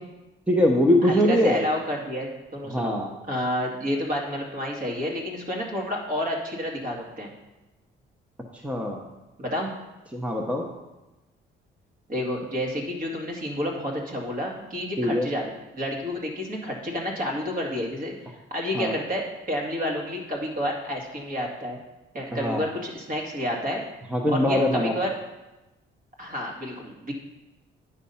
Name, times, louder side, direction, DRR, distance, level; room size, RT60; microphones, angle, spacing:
voice 1, 0.5-1.6 2.7-3.1 8.6-9.0 10.1-10.6 15.0-15.3 18.7-18.9 22.3-22.6 24.1-24.9, left 1 dB, 5° right, 1 dB, 1.0 m, -22 dB
voice 2, 1.0-2.9 3.3-7.3 9.4-9.7 12.1-18.2 18.5-21.8 22.1-23.8 24.3-25.1 26.2-27.1, equal, 45° right, -1 dB, 2.1 m, -30 dB
9.7 x 4.2 x 5.7 m, 1.0 s
cardioid pair, 90°, 20 cm